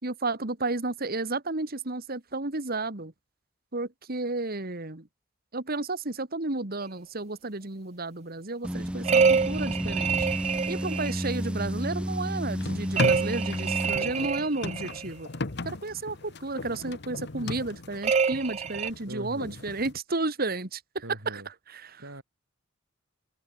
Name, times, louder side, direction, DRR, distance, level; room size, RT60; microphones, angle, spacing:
voice 1, 0.0-3.1 3.7-5.1 5.5-10.3 10.7-15.3 15.7-21.4 21.7-22.0, right 2 dB, 50° right, 2.1 m, -32 dB
sound 1, 8.6-14.0, equal, 5° right, 0.7 m, -31 dB
sound 2, 9.0-11.3 13.0-15.0 18.0-18.9, right 5 dB, 35° right, 0.4 m, -26 dB
sound 3, 12.4-19.9, left 2 dB, 60° left, 1.2 m, -37 dB
voice 2, 19.1-19.6 21.0-21.5 22.0-22.2, right 1 dB, 80° right, 6.6 m, -41 dB
head